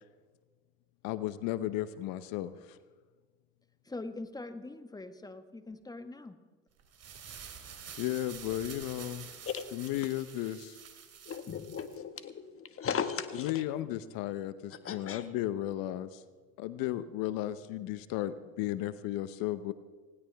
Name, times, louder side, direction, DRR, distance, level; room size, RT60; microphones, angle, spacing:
voice 1, 1.0-2.8 8.0-9.3 9.7-10.8 13.4-16.2 16.6-19.7, left 13 dB, 55° left, 0.9 m, -34 dB
voice 2, 3.8-6.4, left 2 dB, 10° left, 1.4 m, -43 dB
sound 1, 6.8-12.0, right 7 dB, 35° right, 2.5 m, -48 dB
voice 3, 9.4-9.9 11.3-13.5 14.8-15.2, left 7 dB, 35° left, 1.6 m, -37 dB
19.5 x 17.0 x 3.5 m
hypercardioid pair, 80°, 40 cm